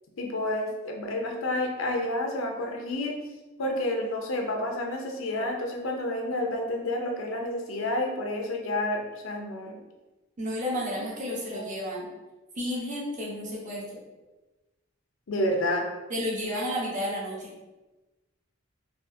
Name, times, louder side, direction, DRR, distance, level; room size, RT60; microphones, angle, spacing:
voice 1, 0.2-3.1 3.6-9.8 11.0-11.6 15.3-15.9, left 1 dB, 85° left, 2 dB, 0.6 m, -30 dB
voice 2, 10.4-12.1 12.6-14.0 16.1-17.5, equal, 40° right, -4 dB, 0.9 m, -32 dB
3.7 x 2.4 x 2.6 m, 1.1 s
head